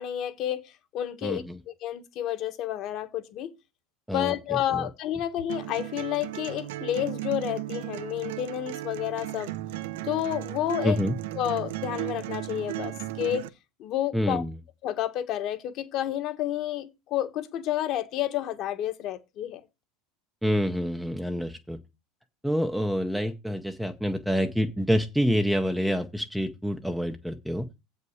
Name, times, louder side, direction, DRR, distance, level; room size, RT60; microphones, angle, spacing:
voice 1, 0.0-1.4 1.8-3.5 4.1-9.6 10.0-11.0 11.3-13.4 13.8-14.4 14.8-19.6, left 12 dB, 35° left, 1.3 m, -30 dB
voice 2, 1.2-1.6 4.1-4.9 10.8-11.1 14.1-14.6 20.4-21.8 22.4-27.7, equal, ahead, 0.7 m, -27 dB
sound 1, 5.5-13.5, right 15 dB, 75° right, 0.8 m, -35 dB
8.2 x 5.5 x 7.9 m
supercardioid pair, 175°, 0 cm